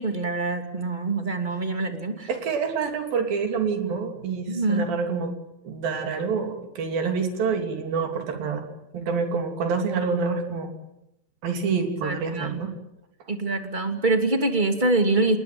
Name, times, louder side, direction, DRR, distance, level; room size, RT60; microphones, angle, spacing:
voice 1, 0.0-2.3 4.5-4.9 12.0-12.6 13.3-15.4, right 2 dB, 15° right, 6 dB, 2.3 m, -25 dB
voice 2, 2.3-5.3 5.6-8.7 8.9-10.7 11.4-12.7, right 5 dB, 70° right, 5 dB, 4.9 m, -27 dB
28.0 x 21.0 x 9.3 m, 0.87 s
omnidirectional pair, 4.3 m